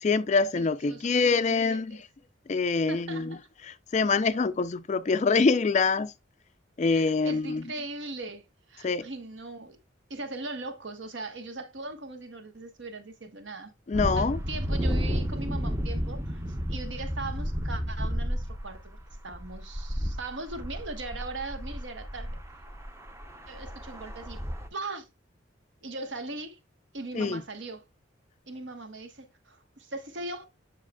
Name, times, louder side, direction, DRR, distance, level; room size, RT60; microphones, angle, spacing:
voice 1, 0.0-2.0 2.5-3.4 3.9-6.1 6.8-7.6 8.8-9.1 13.9-14.4 27.1-27.4, left 4 dB, 35° left, 0.4 m, -25 dB
voice 2, 0.6-2.0 2.9-3.4 6.8-8.4 8.7-9.8 10.1-13.7 14.2-16.4 16.7-19.0 19.2-22.4 23.5-24.4 24.7-25.1 25.8-26.6 26.9-27.8 28.5-30.5, right 2 dB, 65° right, 1.2 m, -39 dB
sound 1, 13.9-24.7, equal, 15° right, 0.7 m, -32 dB
7.3 x 6.4 x 2.2 m
head